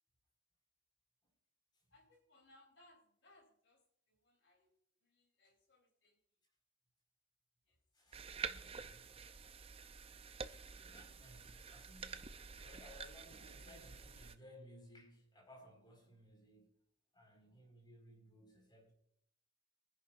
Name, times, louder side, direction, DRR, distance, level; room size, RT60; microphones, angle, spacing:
voice 1, 1.9-4.7 5.0-6.2 7.7-7.8 13.3-13.5, left 2 dB, 65° left, 2 dB, 3.7 m, -68 dB
voice 2, 7.9-9.1 10.7-16.7 17.1-18.9, equal, 25° left, 0 dB, 4.7 m, -60 dB
sound 1, 8.1-14.4, right 5 dB, 30° right, 0.5 m, -49 dB
23.5 x 10.5 x 2.5 m, 0.68 s
head